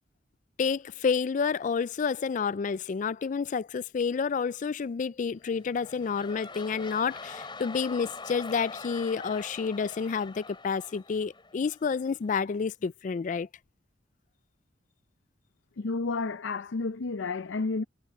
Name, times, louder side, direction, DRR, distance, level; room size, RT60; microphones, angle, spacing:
voice 1, 0.6-13.5, left 5 dB, 40° left, 0.3 m, -29 dB
sound 1, 5.4-12.0 12.5-12.6, left 3 dB, 25° left, 4.2 m, -44 dB
voice 2, 15.8-17.8, left 3 dB, 85° left, 0.6 m, -31 dB
head